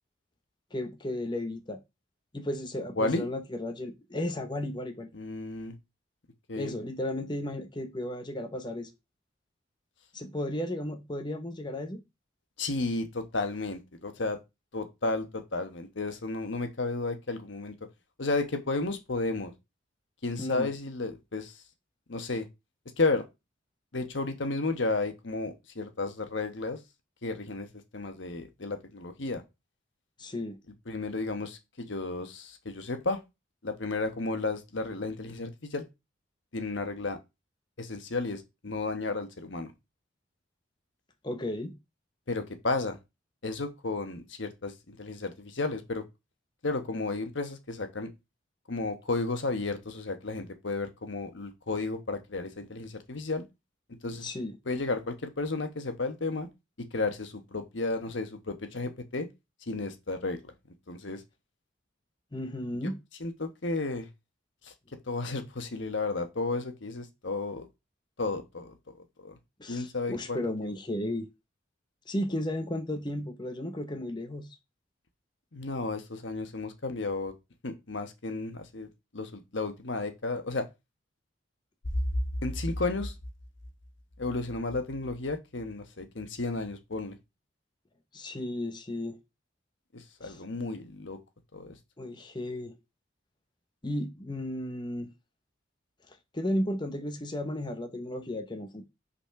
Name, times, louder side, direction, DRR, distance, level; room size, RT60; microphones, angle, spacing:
voice 1, 0.7-1.8 2.3-5.1 6.6-8.9 10.1-12.0 20.4-20.7 30.2-30.6 41.2-41.8 54.2-54.6 62.3-63.0 69.6-71.3 72.1-74.5 88.1-89.2 90.2-90.4 92.0-92.7 93.8-95.1 96.3-98.9, left 1 dB, 25° left, 0.8 m, -34 dB
voice 2, 3.0-3.3 5.1-5.7 6.5-6.7 12.6-14.4 14.7-17.7 18.2-19.5 20.2-21.5 22.1-22.5 23.0-23.2 23.9-26.8 27.2-27.7 27.9-29.4 30.9-33.2 33.6-35.9 36.5-37.2 37.8-39.7 42.3-43.0 43.4-46.0 46.6-48.1 48.7-53.4 54.0-54.3 54.7-56.5 56.9-59.3 59.7-60.5 60.9-61.2 63.2-64.1 64.6-64.7 65.1-67.7 68.2-68.7 69.2-69.4 69.7-70.4 75.5-77.3 77.6-78.9 79.1-80.7 82.4-83.1 84.2-87.2 89.9-91.2 91.5-91.7, left 3 dB, 70° left, 1.1 m, -33 dB
5.7 x 4.2 x 5.7 m
head